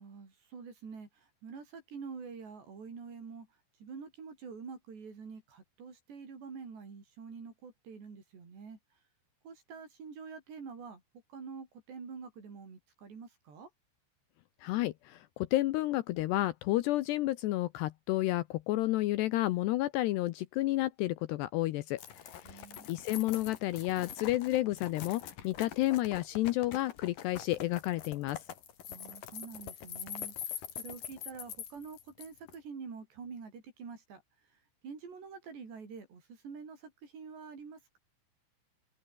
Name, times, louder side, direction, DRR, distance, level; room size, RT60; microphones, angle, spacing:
voice 1, 0.0-3.5 3.8-8.8 9.4-11.0 11.3-13.7 22.4-22.9 28.9-34.2 34.8-38.0, right 5 dB, 65° right, 8.1 m, -47 dB
voice 2, 14.6-28.4, left 16 dB, 75° left, 2.6 m, -31 dB
sound 1, 22.0-32.6, left 9 dB, 55° left, 3.4 m, -44 dB
omnidirectional pair, 5.4 m